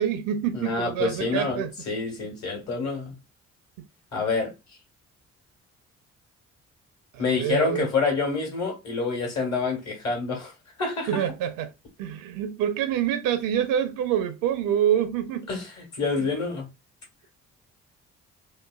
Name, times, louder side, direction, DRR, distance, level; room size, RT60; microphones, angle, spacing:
voice 1, 0.0-1.7 7.1-7.9 11.1-11.7 12.0-15.5 16.2-16.3, right 10 dB, 60° right, 0.6 m, -26 dB
voice 2, 0.5-3.2 4.1-4.5 7.2-10.5 10.8-11.3 15.5-16.7, left 4 dB, 45° left, 1.4 m, -27 dB
2.9 x 2.1 x 2.3 m
figure-of-eight pair, 45°, 38 cm